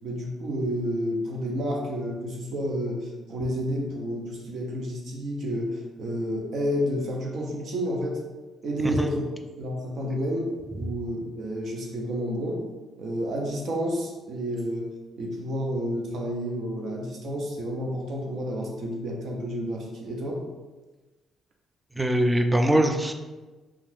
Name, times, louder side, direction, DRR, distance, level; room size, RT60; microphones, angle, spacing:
voice 1, 0.0-8.2 8.6-9.2 9.6-12.6 13.0-14.9 15.2-20.4, equal, 65° right, 0 dB, 0.6 m, -30 dB
voice 2, 22.0-23.1, right 1 dB, 10° right, 4 dB, 0.3 m, -21 dB
2.5 x 2.3 x 3.3 m, 1.2 s
cardioid pair, 90°, 0 cm